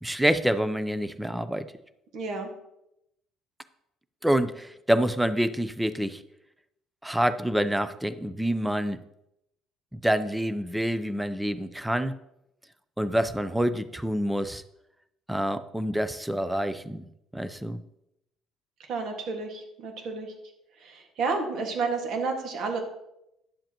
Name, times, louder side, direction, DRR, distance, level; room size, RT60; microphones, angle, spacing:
voice 1, 0.0-1.7 4.2-6.2 7.0-9.0 9.9-12.1 13.0-14.6 15.3-17.1 17.3-17.8, equal, 5° right, 13 dB, 0.5 m, -27 dB
voice 2, 2.1-2.5 18.9-20.3 20.8-22.8, right 4 dB, 60° right, 3 dB, 1.7 m, -31 dB
10.5 x 7.5 x 2.9 m, 0.82 s
cardioid pair, 125°, 0 cm